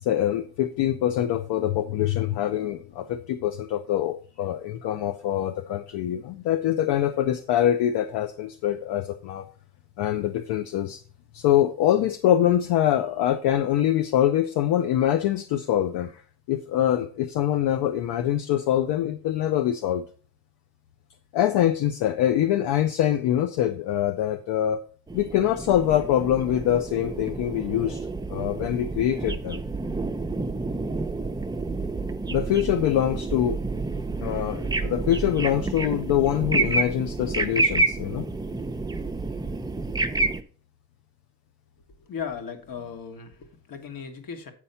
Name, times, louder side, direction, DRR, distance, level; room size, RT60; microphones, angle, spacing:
voice 1, 0.0-9.4 10.0-11.0 11.3-16.2 16.5-20.0 21.3-24.8 25.1-28.0 28.3-29.6 32.3-33.6 34.2-38.3, left 11 dB, 70° left, 9 dB, 0.7 m, -24 dB
sound 1, 25.1-40.4, right 3 dB, 10° right, 0.6 m, -29 dB
voice 2, 42.0-44.5, left 6 dB, 50° left, 6 dB, 1.7 m, -37 dB
8.5 x 4.3 x 5.6 m, 0.42 s
cardioid pair, 90°, 43 cm